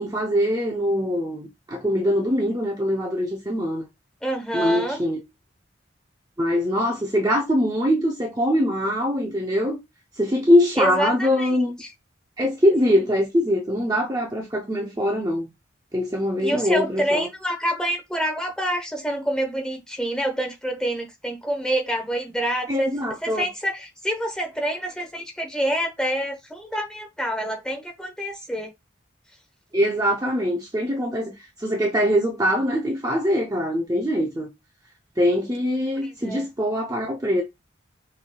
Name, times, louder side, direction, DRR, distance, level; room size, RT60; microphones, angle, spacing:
voice 1, 0.0-3.9 4.5-5.2 6.4-9.8 10.1-11.8 12.4-15.5 15.9-17.3 22.7-23.5 29.7-34.5 35.2-37.4, equal, 20° right, 0.6 m, -23 dB
voice 2, 4.2-5.0 10.8-11.9 16.4-22.9 23.2-28.7 36.0-36.4, equal, 5° left, 1.0 m, -27 dB
6.0 x 3.3 x 2.3 m
head